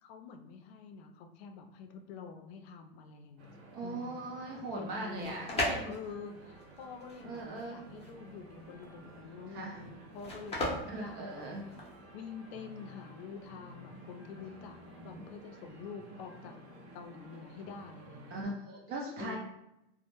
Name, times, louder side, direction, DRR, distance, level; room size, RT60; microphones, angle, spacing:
voice 1, 0.0-4.2 4.8-11.4 12.1-16.6 16.9-18.5 19.2-19.4, left 5 dB, 75° left, 5 dB, 0.5 m, -47 dB
sound 1, 3.4-18.4, right 1 dB, 80° right, 0.7 m, -53 dB
voice 2, 3.7-5.9 7.2-7.8 9.5-9.9 10.9-11.6 18.3-19.4, right 2 dB, 45° right, -2 dB, 0.4 m, -40 dB
sound 2, 4.9-12.0, left 1 dB, 20° left, 0.6 m, -38 dB
2.1 x 2.0 x 2.9 m, 0.88 s
supercardioid pair, 130°, 32 cm